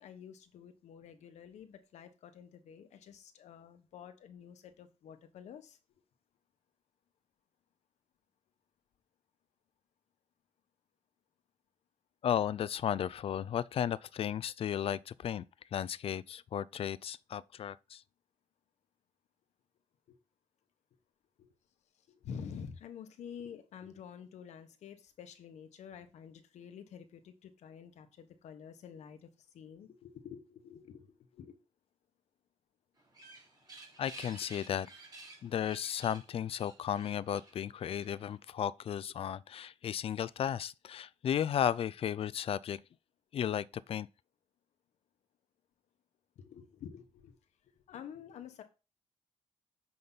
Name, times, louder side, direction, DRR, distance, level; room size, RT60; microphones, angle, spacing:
voice 1, 0.0-5.8 20.1-20.2 21.4-21.5 22.1-29.3 29.5-31.6 46.4-47.4 47.7-48.6, left 7 dB, 85° left, 1.3 m, -49 dB
voice 2, 12.2-15.4 15.7-18.0 34.0-34.9 35.4-42.8 43.3-44.1, left 9 dB, 55° left, 0.4 m, -34 dB
sound 1, 33.0-38.3, right 2 dB, 35° right, 3.5 m, -53 dB
7.8 x 5.3 x 4.1 m
cardioid pair, 105°, 12 cm